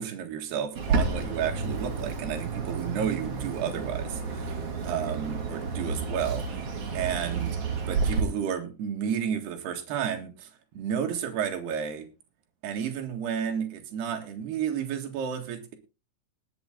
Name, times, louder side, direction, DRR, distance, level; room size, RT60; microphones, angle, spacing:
voice 1, 0.0-12.1 12.6-15.8, right 8 dB, 60° right, 5 dB, 3.4 m, -32 dB
Bird, 0.7-8.2, right 4 dB, 45° right, 3.1 m, -30 dB
19.5 x 7.7 x 3.7 m, 0.30 s
omnidirectional pair, 5.8 m